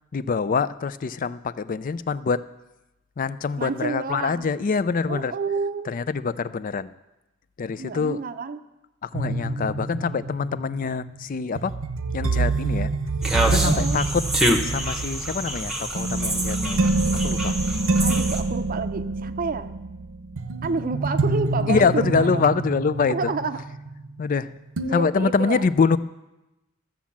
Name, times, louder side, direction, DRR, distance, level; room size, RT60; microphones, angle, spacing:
voice 1, 0.1-2.4 3.2-5.3 5.9-6.9 7.6-8.2 9.0-11.7 12.1-12.9 13.5-14.2 14.6-16.9 17.2-17.6 21.7-23.3 24.2-24.5 24.9-26.0, left 5 dB, 40° left, 16 dB, 0.4 m, -25 dB
voice 2, 3.6-4.5 5.1-5.9 7.8-8.6 13.6-14.0 18.0-19.7 20.6-22.4 23.0-23.6 24.9-25.6, right 4 dB, 45° right, 10 dB, 0.5 m, -29 dB
sound 1, 9.1-24.4 24.8-24.9, right 3 dB, 80° right, 0.8 m, -27 dB
sound 2, 13.2-18.4, right 1 dB, 5° right, 1.0 m, -26 dB
13.5 x 7.3 x 7.2 m, 1.0 s
head